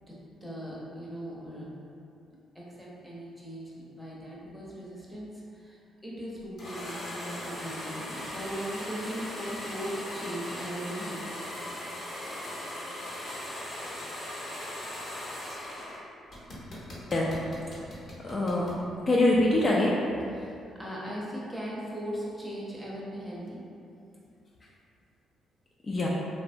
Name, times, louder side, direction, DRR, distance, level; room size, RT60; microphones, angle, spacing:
voice 1, 0.0-1.8 2.5-3.7 4.0-11.4 20.3-23.6, equal, 5° right, -6 dB, 0.6 m, -39 dB
sound 1, 6.6-16.0 16.3-18.8, left 1 dB, 55° left, 0.9 m, -39 dB
voice 2, 18.2-18.8 19.1-20.0 25.8-26.1, left 1 dB, 35° left, -4 dB, 0.3 m, -24 dB
2.8 x 2.1 x 2.5 m, 2.5 s
cardioid pair, 90°, 0 cm